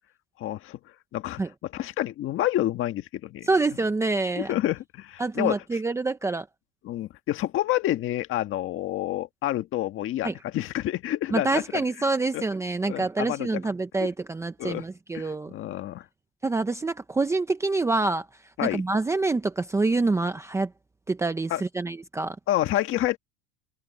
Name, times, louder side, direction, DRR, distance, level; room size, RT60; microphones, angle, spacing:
voice 1, 0.4-0.8 1.1-3.5 4.4-5.6 6.8-11.8 12.3-12.4 12.9-13.5 14.6-14.8 15.1-16.0 18.6-18.8 21.5-21.6 22.5-23.2, left 13 dB, 35° left, 1.6 m, -28 dB
voice 2, 3.5-4.5 5.2-6.5 10.2-10.3 11.3-15.5 16.4-18.3 18.6-20.7 21.1-22.4, right 3 dB, 10° right, 0.8 m, -26 dB
supercardioid pair, 155°, 36 cm